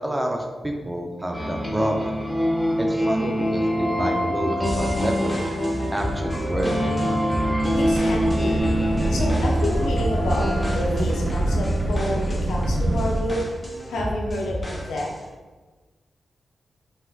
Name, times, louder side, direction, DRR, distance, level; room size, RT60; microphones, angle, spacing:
voice 1, 0.0-2.1 2.8-5.4 5.9-6.9, right 1 dB, 20° right, 2 dB, 0.4 m, -28 dB
sound 1, 1.3-10.8, equal, ahead, 0.8 m, -25 dB
sound 2, 4.6-15.3, equal, 30° left, 0.8 m, -32 dB
voice 2, 7.7-8.6 9.1-13.5 13.9-15.1, left 1 dB, 85° left, -1 dB, 0.5 m, -29 dB
sound 3, 7.7-13.2, right 1 dB, 55° right, 0.7 m, -25 dB
4.1 x 2.2 x 2.3 m, 1.3 s
supercardioid pair, 45°, 0 cm